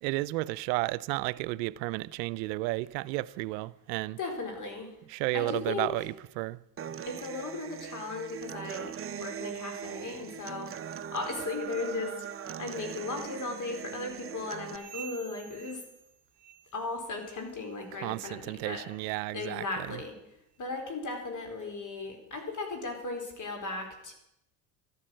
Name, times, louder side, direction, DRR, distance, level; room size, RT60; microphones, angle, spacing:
voice 1, 0.0-4.2 5.1-6.6 18.0-20.0, right 20 dB, 85° right, 0.7 m, -32 dB
voice 2, 4.2-5.0 5.3-5.9 7.1-15.8 16.7-18.8 19.3-20.2 20.6-24.1, left 3 dB, 35° left, 4.2 m, -37 dB
Human voice / Acoustic guitar, 6.8-14.8, right 8 dB, 25° right, 0.8 m, -40 dB
sound 1, 14.7-16.9 17.2-17.6 18.0-18.3 18.9-19.0 19.7-19.8 20.5-20.6, right 10 dB, 55° right, 1.1 m, -49 dB
13.5 x 9.9 x 7.7 m
supercardioid pair, 95°, 49 cm